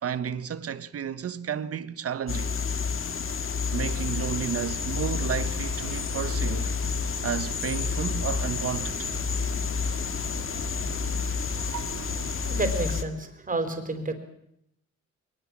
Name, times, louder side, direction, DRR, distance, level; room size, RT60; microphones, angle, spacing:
voice 1, 0.0-2.5 3.7-6.7 7.2-9.1, right 8 dB, 50° right, 1.4 m, -32 dB
sound 1, 2.3-13.0, left 5 dB, 45° left, 1.9 m, -29 dB
sound 2, 3.8-12.7, right 7 dB, 75° right, 6.2 m, -42 dB
voice 2, 12.3-14.1, right 2 dB, 25° right, 4.5 m, -30 dB
21.5 x 20.0 x 7.6 m
cardioid pair, 90°, 30 cm